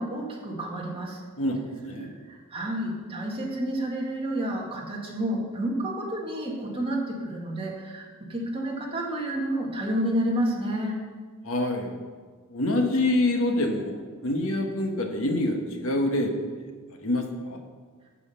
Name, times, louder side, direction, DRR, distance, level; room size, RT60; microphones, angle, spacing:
voice 1, 0.0-1.2 2.2-11.0, right 1 dB, 25° right, -2 dB, 1.9 m, -30 dB
voice 2, 1.4-2.1 11.4-11.9 12.5-16.3 16.6-16.7 17.0-17.6, left 1 dB, 65° left, 3 dB, 1.4 m, -26 dB
8.7 x 7.6 x 6.8 m, 1.5 s
head